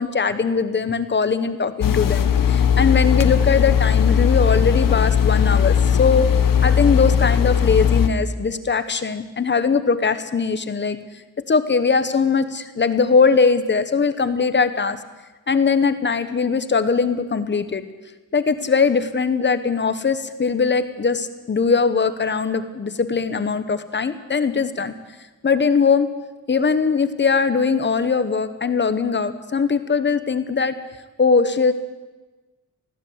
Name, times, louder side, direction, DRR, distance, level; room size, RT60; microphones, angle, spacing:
voice 1, 0.0-6.3 6.6-11.0 11.5-15.0 15.5-17.8 18.3-24.9 25.4-26.1 26.5-30.7 31.2-31.7, left 5 dB, 35° left, 11 dB, 1.1 m, -20 dB
sound 1, 1.8-8.1, left 8 dB, 80° left, 1.4 m, -18 dB
20.5 x 15.5 x 8.0 m, 1.2 s
wide cardioid pair, 170°, 33 cm